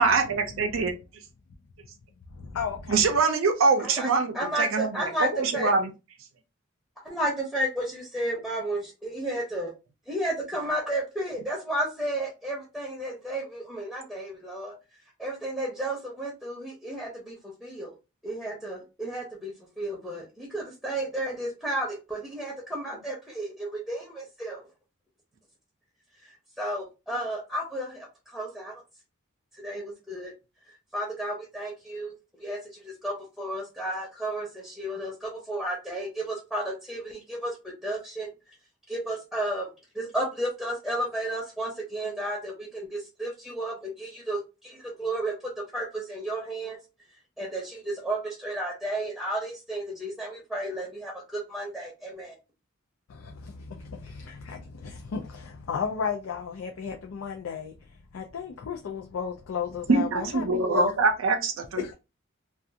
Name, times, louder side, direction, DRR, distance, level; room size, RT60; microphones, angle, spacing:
voice 1, 0.0-0.9 2.9-5.9 59.9-61.9, right 4 dB, 70° right, 0.5 m, -24 dB
voice 2, 2.3-3.0 53.1-57.7 58.1-60.9 61.8-61.9, left 6 dB, 75° left, 0.4 m, -34 dB
voice 3, 3.8-5.7 7.0-9.7 10.1-14.7 15.2-18.0 18.2-24.6 26.2-28.8 29.6-30.3 30.9-32.1 32.4-38.3 38.9-45.4 45.7-46.8 47.4-52.4, right 1 dB, ahead, 0.7 m, -33 dB
2.4 x 2.3 x 2.7 m
head